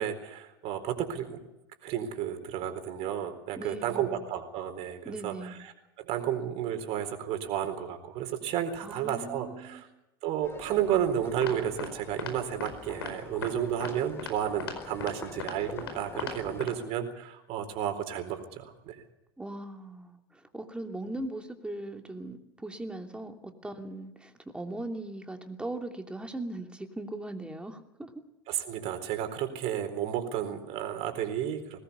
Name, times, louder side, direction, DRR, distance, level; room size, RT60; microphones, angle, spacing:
voice 1, 0.0-1.4 1.8-9.9 10.2-19.0 28.5-31.8, right 10 dB, 50° right, 7 dB, 4.2 m, -32 dB
voice 2, 3.5-4.2 5.0-5.6 8.8-9.8 19.4-28.1, right 2 dB, 10° right, 4 dB, 3.0 m, -39 dB
sound 1, 10.4-16.6, left 3 dB, 20° left, 3.0 m, -46 dB
sound 2, 11.4-11.9 12.2-12.3 12.6-12.7 13.0-13.1 13.4-13.5 13.8-13.9 14.2-14.3 14.6-14.7 15.0-15.1 15.4-15.9 16.2-16.3 16.6-16.7, left 5 dB, 80° left, 4.8 m, -36 dB
22.0 x 19.0 x 7.0 m, 0.94 s
hypercardioid pair, 85°, 13 cm